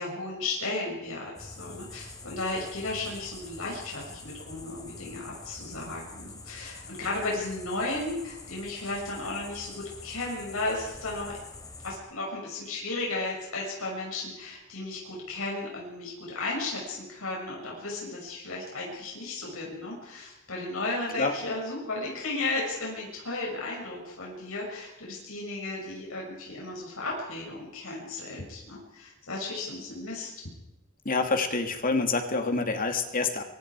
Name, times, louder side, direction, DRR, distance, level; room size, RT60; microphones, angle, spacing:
voice 1, 0.0-11.3 11.8-30.3, left 2 dB, 80° left, -2 dB, 6.5 m, -34 dB
sound 1, 1.4-12.0, left 3 dB, 15° left, 3.0 m, -45 dB
voice 2, 31.0-33.4, left 3 dB, 40° left, 5 dB, 2.6 m, -27 dB
25.0 x 24.5 x 4.9 m, 0.92 s
head